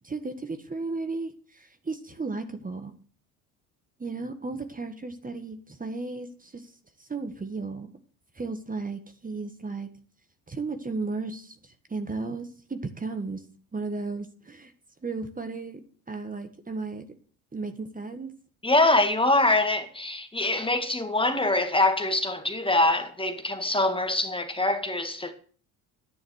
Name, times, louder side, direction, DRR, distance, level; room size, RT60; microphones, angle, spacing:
voice 1, 0.0-2.9 4.0-6.7 7.0-7.9 8.4-9.9 10.5-13.4 13.7-14.7 15.0-15.8 16.1-17.0 17.5-18.3, right 3 dB, 20° right, 1.8 m, -34 dB
voice 2, 18.6-25.3, left 2 dB, 10° left, 2.0 m, -24 dB
11.0 x 10.0 x 6.5 m
hypercardioid pair, 75°, 42 cm